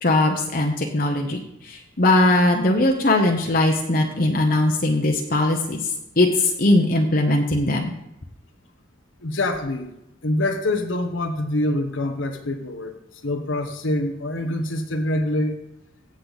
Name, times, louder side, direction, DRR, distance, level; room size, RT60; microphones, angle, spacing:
voice 1, 0.0-5.9 6.2-7.9, left 2 dB, 50° left, 2 dB, 1.0 m, -20 dB
voice 2, 9.2-9.9 10.2-15.6, left 1 dB, 85° left, 5 dB, 1.2 m, -25 dB
16.5 x 6.5 x 4.1 m, 0.83 s
head